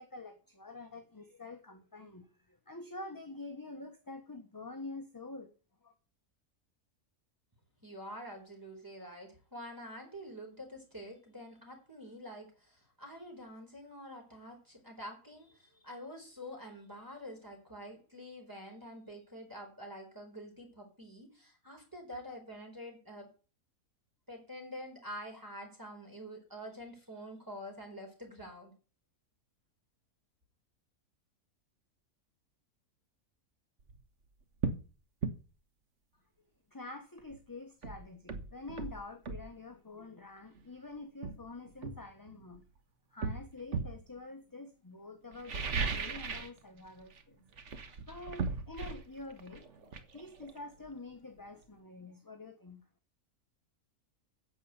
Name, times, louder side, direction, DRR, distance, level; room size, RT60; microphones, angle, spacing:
voice 1, 0.0-5.5 5.8-5.9 36.7-42.6 43.1-47.4 48.1-52.8, left 2 dB, 15° left, 1.1 m, -47 dB
voice 2, 7.8-23.3 24.3-28.7, equal, 10° right, 4.5 m, -47 dB
sound 1, 33.8-34.0 34.6-34.9 35.2-35.4 37.3-37.4 37.8-39.5 40.6-40.7 41.2-42.6 43.2-44.0 45.3-46.6 46.8-47.2 47.5-51.1 51.4-51.5, right 4 dB, 50° right, 1.5 m, -37 dB
9.6 x 7.8 x 8.1 m
omnidirectional pair, 1.6 m